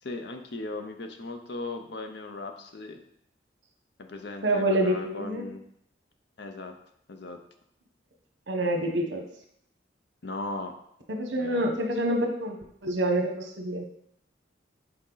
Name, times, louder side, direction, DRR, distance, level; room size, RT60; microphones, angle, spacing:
voice 1, 0.0-3.0 4.0-5.6 6.4-6.7 7.1-7.4 10.2-10.7 11.4-11.7, left 2 dB, 60° left, 6 dB, 0.7 m, -37 dB
voice 2, 4.4-5.5 8.5-9.3 11.1-13.9, right 1 dB, 70° right, 3 dB, 1.0 m, -27 dB
6.4 x 4.3 x 3.9 m, 0.72 s
head